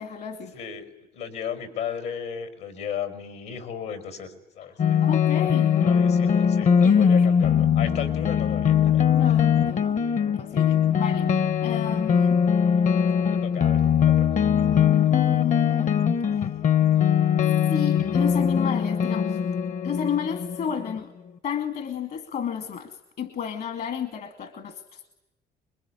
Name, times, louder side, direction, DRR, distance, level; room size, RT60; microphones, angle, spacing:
voice 1, 0.0-0.6 4.8-5.9 6.8-7.3 9.1-10.0 10.3-11.3 11.6-12.4 15.1-16.1 16.3-16.6 17.7-19.5 19.8-21.1 21.4-25.0, left 8 dB, 65° left, 9 dB, 2.5 m, -31 dB
voice 2, 0.5-5.0 5.4-5.5 5.8-9.0 13.4-14.4, left 8 dB, 80° left, 10 dB, 5.4 m, -35 dB
sound 1, 4.8-21.0, left 8 dB, 45° left, 1.0 m, -21 dB
27.0 x 22.5 x 9.9 m, 0.94 s
cardioid pair, 110°, 17 cm